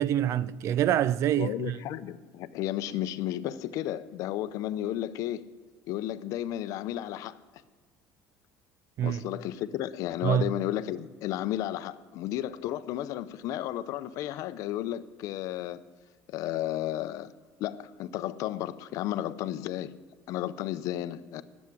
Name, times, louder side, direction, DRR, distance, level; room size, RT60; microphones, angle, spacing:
voice 1, 0.0-1.8 9.0-9.2 10.2-10.4, right 11 dB, 50° right, 0.4 m, -26 dB
voice 2, 1.4-5.5 5.9-7.4 9.0-15.8 16.3-17.3 17.6-20.0 20.3-21.4, left 13 dB, 60° left, 0.6 m, -33 dB
12.0 x 7.2 x 9.6 m
cardioid pair, 135°, 6 cm